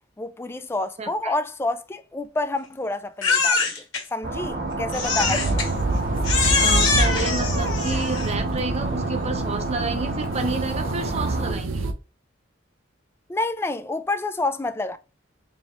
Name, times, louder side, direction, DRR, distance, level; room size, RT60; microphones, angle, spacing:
voice 1, 0.2-3.7 4.1-5.7 13.3-15.0, left 2 dB, 10° left, 0.3 m, -28 dB
voice 2, 1.0-1.3 6.6-11.9, right 3 dB, 35° right, 0.7 m, -30 dB
Crying sobbing, 3.2-4.0 4.9-5.7 6.2-8.4, left 5 dB, 80° left, 1.4 m, -23 dB
sound 1, 4.2-11.5, right 2 dB, 60° right, 1.4 m, -30 dB
sound 2, 5.2-11.9, right 2 dB, 80° right, 0.6 m, -27 dB
4.1 x 3.5 x 2.4 m
head